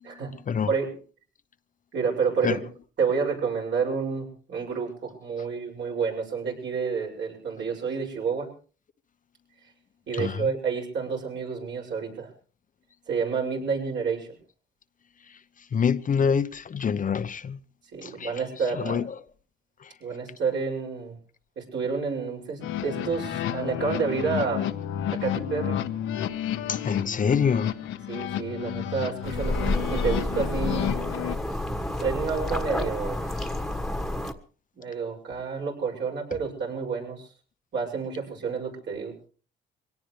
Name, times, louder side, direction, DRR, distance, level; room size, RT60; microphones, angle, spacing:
voice 1, 1.9-2.6 3.0-8.5 10.1-12.3 13.1-14.3 17.9-19.0 20.0-21.2 21.6-24.7 25.1-25.8 28.1-30.9 32.0-33.3 34.7-37.3 37.7-39.1, right 5 dB, 65° right, 6.6 m, -29 dB
voice 2, 15.7-17.6 18.0-18.3 18.8-19.1 26.7-27.7, left 6 dB, 40° left, 0.8 m, -25 dB
sound 1, 22.6-31.4, left 10 dB, 80° left, 1.2 m, -31 dB
sound 2, 29.2-34.3, left 1 dB, ahead, 1.5 m, -29 dB
23.5 x 18.0 x 3.3 m
cardioid pair, 90°, 20 cm